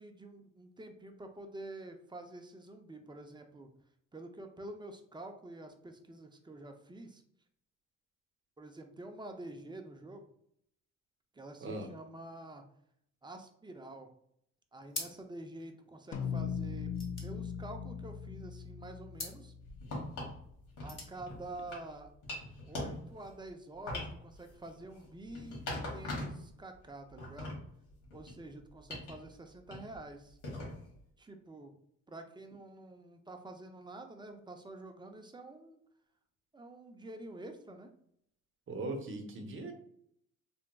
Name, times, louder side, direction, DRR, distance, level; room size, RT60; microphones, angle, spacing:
voice 1, 0.0-3.7 4.1-7.2 8.6-10.3 11.3-12.6 13.2-14.1 14.7-16.9 17.2-19.5 20.8-22.1 22.7-27.5 28.1-30.4 31.2-31.7 32.1-35.8 36.5-37.9, right 2 dB, 15° right, 5 dB, 0.5 m, -48 dB
sound 1, 14.9-15.5 15.8-15.9 16.1-18.3 19.1-19.5 20.6-21.2, left 3 dB, 45° left, 1.1 m, -44 dB
sound 2, 16.1-20.7, left 7 dB, 70° left, 0.5 m, -40 dB
sound 3, 19.7-20.4 20.8-21.9 22.2-23.4 23.9-26.5 26.8-28.4 28.9-29.2 29.7-30.0 30.4-31.0, left 1 dB, 90° left, 1.5 m, -41 dB
voice 2, 38.7-39.7, right 2 dB, 40° right, 4 dB, 0.8 m, -39 dB
3.4 x 2.9 x 2.2 m, 0.70 s
cardioid pair, 90°, 30 cm